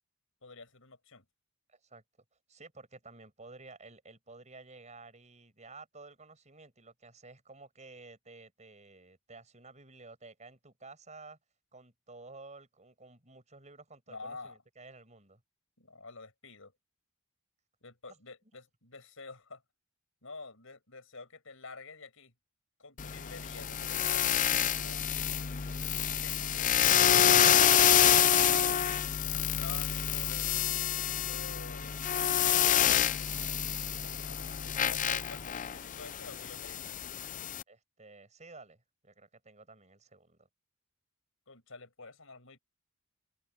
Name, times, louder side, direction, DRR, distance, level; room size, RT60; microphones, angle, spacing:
voice 1, 0.4-1.3 14.1-14.6 15.8-16.7 17.8-19.6 20.2-22.3 22.8-25.1 26.2-30.5 31.1-32.0 32.3-37.0 41.5-42.6, left 3 dB, 65° left, 6.9 m, -49 dB
voice 2, 1.7-2.0 2.5-11.4 11.7-15.4 37.7-40.5, right 3 dB, 35° right, 6.5 m, -53 dB
sound 1, 23.0-37.6, left 9 dB, 35° left, 0.5 m, -27 dB
open air
head